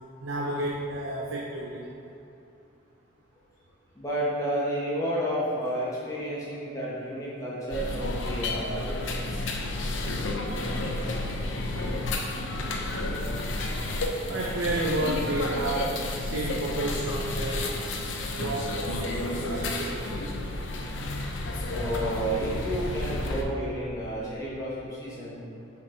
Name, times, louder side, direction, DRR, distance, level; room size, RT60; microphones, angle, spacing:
voice 1, 0.2-1.9 14.3-17.8 18.3-20.4, right 1 dB, 75° right, -3 dB, 0.7 m, -31 dB
voice 2, 3.9-9.2 21.7-25.4, equal, 15° left, -8 dB, 1.1 m, -31 dB
sound 1, 7.7-23.4, left 2 dB, 70° left, 0.8 m, -31 dB
7.0 x 4.8 x 5.1 m, 2.8 s
head